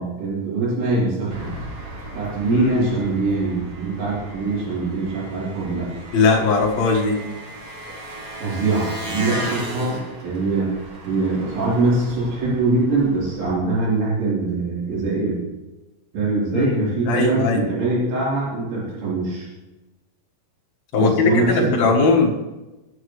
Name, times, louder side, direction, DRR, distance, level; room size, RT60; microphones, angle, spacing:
voice 1, 0.0-1.5 2.1-5.9 8.4-10.7 11.0-15.4 16.1-19.5 21.0-21.9, right 3 dB, 80° right, -7 dB, 6.2 m, -23 dB
Engine, 1.3-13.5, right 1 dB, 55° right, 1.7 m, -36 dB
voice 2, 2.5-2.8 6.1-7.2 16.5-17.6 20.9-22.3, left 4 dB, 55° left, -2 dB, 2.0 m, -19 dB
16.5 x 10.0 x 3.2 m, 1.1 s
omnidirectional pair, 5.2 m